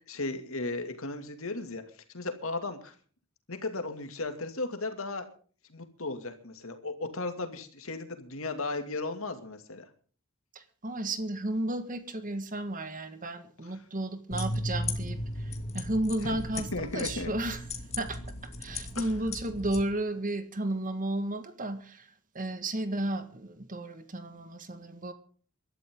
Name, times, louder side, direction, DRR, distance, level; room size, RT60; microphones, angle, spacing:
voice 1, 0.1-1.8 2.1-2.9 3.5-5.3 5.7-9.9 16.2-16.4 16.7-17.3 18.9-19.1, left 2 dB, 70° left, 7 dB, 2.5 m, -35 dB
voice 2, 10.5-17.6 18.0-25.1, right 1 dB, 40° right, 9 dB, 1.7 m, -33 dB
sound 1, 14.3-19.8, left 1 dB, 30° left, 2.7 m, -36 dB
24.0 x 12.5 x 3.8 m, 0.42 s
head